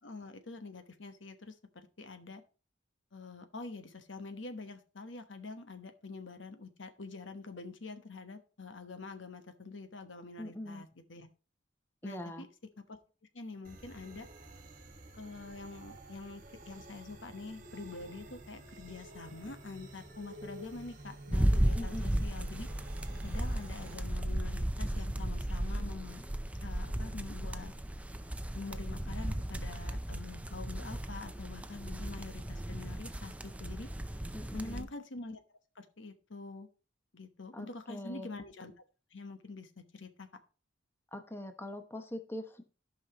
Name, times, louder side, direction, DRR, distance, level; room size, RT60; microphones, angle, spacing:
voice 1, 0.0-2.4 3.1-11.3 12.0-12.5 12.9-13.0 13.3-14.3 15.2-22.7 23.2-26.2 26.6-27.7 28.5-33.9 34.5-35.4 35.7-36.7 37.1-38.7 39.1-40.3, left 3 dB, 80° left, 8 dB, 1.1 m, -46 dB
voice 2, 10.4-10.8 12.0-12.4 21.8-22.2 34.3-34.9 37.5-38.3 41.1-42.6, left 1 dB, 15° left, 7 dB, 0.9 m, -42 dB
sound 1, 13.6-23.9, right 1 dB, 45° right, 1.5 m, -51 dB
sound 2, 21.3-34.8, right 1 dB, 5° right, 0.5 m, -35 dB
14.0 x 5.6 x 2.9 m, 0.36 s
head